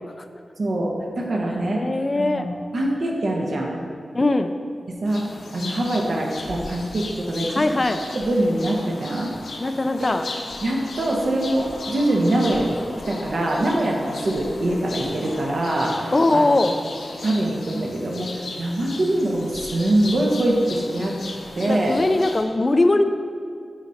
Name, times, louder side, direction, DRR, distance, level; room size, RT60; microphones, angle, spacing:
voice 1, 0.6-1.8 2.2-3.8 4.9-5.2 5.5-7.6 8.1-9.3 10.6-12.8 13.1-16.5 17.2-21.2 21.6-22.0, right 1 dB, 60° right, -1 dB, 1.3 m, -23 dB
voice 2, 1.8-2.5 4.1-4.5 7.5-8.0 9.6-10.2 16.1-16.7 21.7-23.0, left 2 dB, 30° left, 8 dB, 0.4 m, -20 dB
sound 1, 5.1-22.4, left 2 dB, 80° left, 0.9 m, -36 dB
10.0 x 5.0 x 4.2 m, 2.2 s
wide cardioid pair, 130°, 0 cm